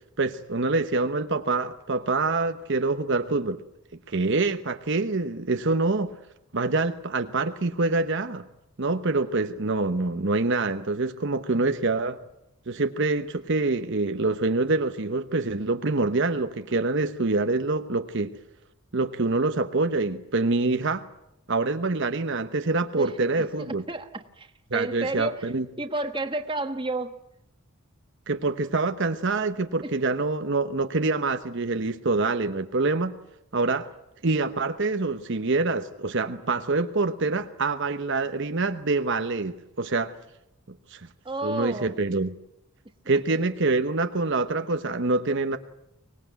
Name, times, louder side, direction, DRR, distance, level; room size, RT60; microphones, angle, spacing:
voice 1, 0.2-3.6 4.1-6.1 6.5-8.4 8.8-12.2 12.7-18.3 18.9-21.0 21.5-23.8 24.7-25.7 28.3-33.2 33.5-33.9 34.2-40.1 40.9-41.0 41.4-42.3 43.1-45.6, right 3 dB, 55° right, 1.0 m, -25 dB
voice 2, 23.0-25.5 25.8-27.2 29.8-29.9 41.2-42.0, right 2 dB, 20° right, 1.4 m, -31 dB
24.5 x 19.5 x 9.3 m
head